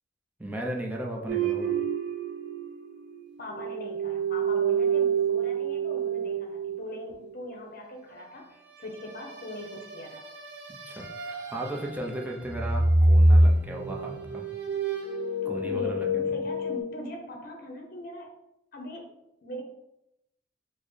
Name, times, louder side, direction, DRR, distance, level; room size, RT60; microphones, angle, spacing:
voice 1, 0.4-1.8 10.9-14.5 15.5-16.2, right 1 dB, 10° right, -1 dB, 0.5 m, -35 dB
sound 1, 1.3-3.2 3.5-7.3 8.9-12.2 12.5-16.8, right 2 dB, 65° right, 0.7 m, -26 dB
voice 2, 3.4-10.2 15.4-18.3 18.7-19.6, left 1 dB, 50° left, 1 dB, 0.7 m, -41 dB
4.4 x 2.1 x 3.1 m, 0.86 s
head